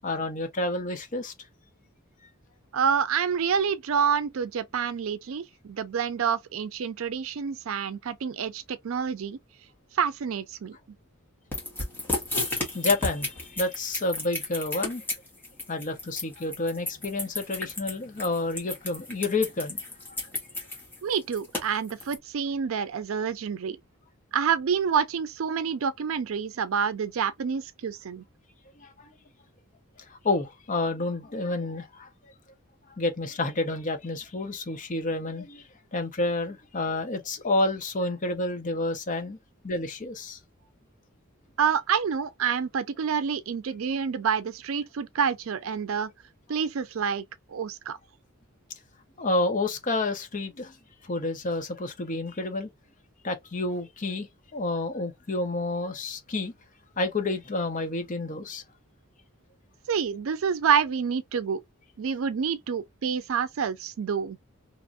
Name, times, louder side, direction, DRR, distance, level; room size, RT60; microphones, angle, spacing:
voice 1, 0.0-1.3 12.4-15.0 15.7-19.8 28.8-29.1 30.1-32.1 33.0-39.4 39.6-40.4 49.2-50.8 51.1-52.7 53.2-56.5 57.0-58.6, left 2 dB, 40° left, 0.7 m, -29 dB
voice 2, 2.7-9.4 9.9-10.8 21.0-23.8 24.3-28.2 41.6-46.1 46.5-48.0 59.9-61.6 62.0-64.4, right 7 dB, 70° right, 0.4 m, -28 dB
sound 1, 11.5-22.2, left 2 dB, 10° left, 1.2 m, -32 dB
2.9 x 2.5 x 2.4 m
head